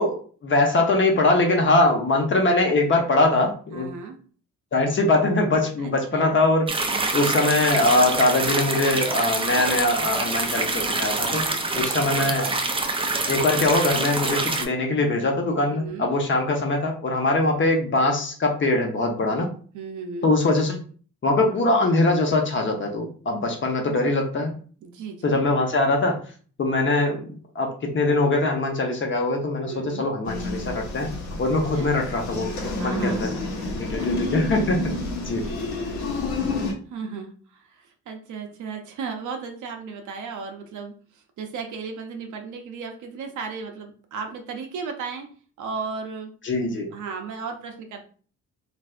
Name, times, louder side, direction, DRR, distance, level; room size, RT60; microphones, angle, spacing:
voice 1, 0.0-3.9 4.7-6.7 7.1-11.5 11.8-12.5 13.3-19.5 20.2-20.8 21.2-24.5 25.2-26.2 26.6-31.1 31.4-32.5 32.8-33.3 33.7-34.8 35.3-35.4 46.4-46.9, left 2 dB, 40° left, 2 dB, 0.9 m, -22 dB
voice 2, 3.7-4.2 5.8-6.4 11.5-12.4 15.7-16.1 19.7-20.3 24.8-25.6 29.7-30.1 31.7-32.0 32.8-33.2 33.6-34.1 36.3-45.3 45.6-46.3 46.9-48.0, right 5 dB, 75° right, 4 dB, 0.7 m, -35 dB
sound 1, 6.7-14.6, right 3 dB, 20° right, 0.4 m, -26 dB
sound 2, 30.2-36.7, left 2 dB, 70° left, 0.9 m, -29 dB
3.2 x 2.5 x 2.4 m, 0.42 s
cardioid pair, 90°, 30 cm